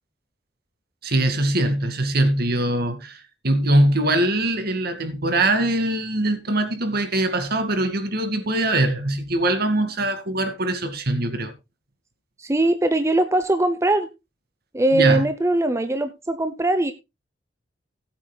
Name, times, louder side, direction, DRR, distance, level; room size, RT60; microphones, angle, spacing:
voice 1, 1.0-11.5 14.9-15.2, right 1 dB, 55° right, 2.2 m, -22 dB
voice 2, 12.4-14.1 14.7-16.9, right 2 dB, 15° right, 0.7 m, -21 dB
18.5 x 8.5 x 2.3 m
head